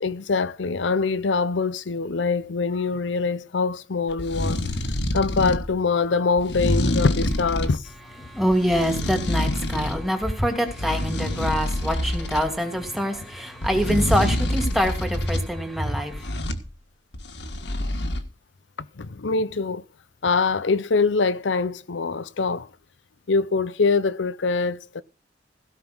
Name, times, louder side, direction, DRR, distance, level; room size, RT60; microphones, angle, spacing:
voice 1, 0.0-4.6 5.1-7.9 19.0-19.8 20.2-22.7 23.3-25.0, left 4 dB, 85° left, 0.7 m, -24 dB
sound 1, 4.1-5.7 6.4-7.8 8.5-10.0 10.4-12.5 13.6-15.4 16.1-16.7 17.1-18.2, left 1 dB, 70° left, 1.8 m, -27 dB
voice 2, 8.2-16.3, equal, ahead, 2.6 m, -25 dB
16.5 x 5.8 x 6.1 m
head